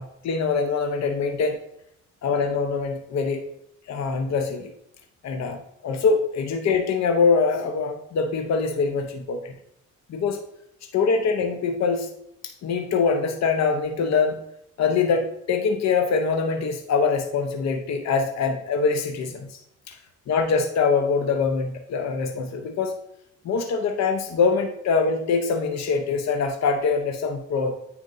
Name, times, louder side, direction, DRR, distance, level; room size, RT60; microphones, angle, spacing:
voice 1, 0.0-1.6 2.2-3.4 3.9-4.7 5.2-9.5 10.1-10.4 10.9-12.1 12.4-14.4 14.8-19.6 19.9-20.0 20.3-22.9 23.4-27.7, left 5 dB, 60° left, 5 dB, 0.8 m, -24 dB
9.1 x 4.4 x 2.6 m, 0.76 s
cardioid pair, 90°, 30 cm